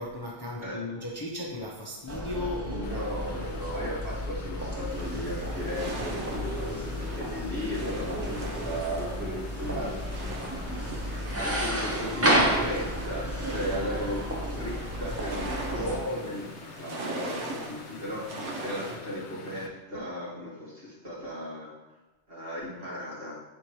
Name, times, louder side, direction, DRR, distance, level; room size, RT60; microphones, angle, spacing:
voice 1, 0.0-3.0 3.3-3.4, left 2 dB, 25° left, -3 dB, 0.6 m, -36 dB
sound 1, 2.1-16.0, equal, 15° right, 0.5 m, -32 dB
voice 2, 2.7-10.3 11.3-16.5 16.8-21.7 22.3-23.4, equal, 55° right, -7 dB, 2.3 m, -36 dB
sound 2, 2.8-19.7, left 4 dB, 80° left, 0.9 m, -46 dB
sound 3, 4.9-19.0, right 2 dB, 85° right, 1.1 m, -41 dB
8.1 x 4.4 x 3.1 m, 1.1 s
omnidirectional pair, 1.1 m